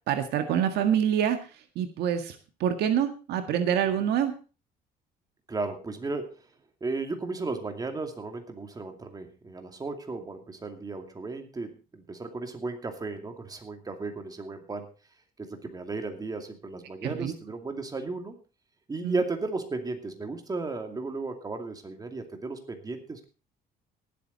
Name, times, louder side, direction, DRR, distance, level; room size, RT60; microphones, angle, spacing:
voice 1, 0.1-1.4 1.8-4.3 17.0-17.3 19.0-19.2, right 9 dB, 80° right, 7 dB, 1.8 m, -26 dB
voice 2, 5.5-6.5 6.8-14.9 15.4-18.3 18.9-23.2, right 3 dB, 20° right, 5 dB, 2.5 m, -35 dB
18.5 x 8.2 x 4.1 m, 0.33 s
cardioid pair, 110°, 17 cm